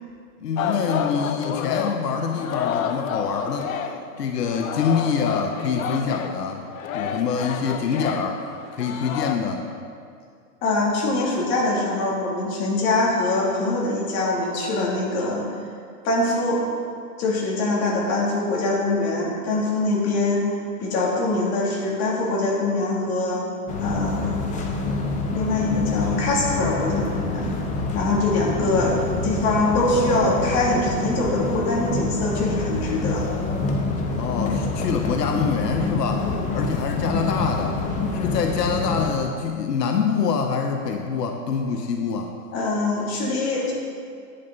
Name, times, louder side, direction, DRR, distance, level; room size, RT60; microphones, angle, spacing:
voice 1, 0.4-3.7 4.2-6.6 6.9-8.4 8.7-9.7 28.6-28.9 34.2-37.8 38.1-42.3, left 6 dB, 85° left, 3 dB, 1.1 m, -25 dB
Singing, 0.6-4.2 4.4-9.4, left 8 dB, 60° left, 0.8 m, -30 dB
voice 2, 10.6-15.4 16.0-16.6 17.2-20.5 20.8-23.4 23.8-24.4 25.3-27.5 27.9-33.3 42.5-43.7, left 2 dB, 35° left, -4 dB, 2.9 m, -23 dB
sound 1, 23.7-39.1, left 3 dB, 15° left, 0.8 m, -26 dB
10.5 x 10.5 x 4.0 m, 2.3 s
hypercardioid pair, 140°, 47 cm